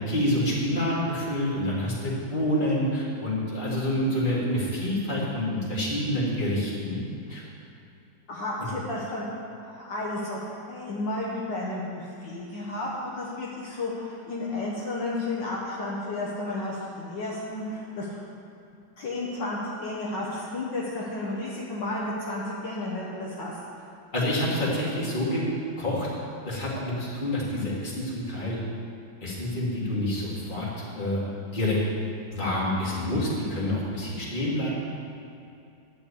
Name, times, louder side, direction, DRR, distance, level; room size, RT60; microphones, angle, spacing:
voice 1, 0.0-7.0 7.3-7.4 8.6-8.7 24.1-25.4 25.8-26.1 26.4-28.6 29.2-31.2 31.5-31.8 32.3-34.7, left 1 dB, 25° left, -7 dB, 2.5 m, -27 dB
voice 2, 8.3-9.3 9.6-18.2 19.0-23.6, left 2 dB, 65° left, -5 dB, 1.9 m, -32 dB
11.5 x 4.9 x 8.4 m, 2.6 s
omnidirectional pair, 2.1 m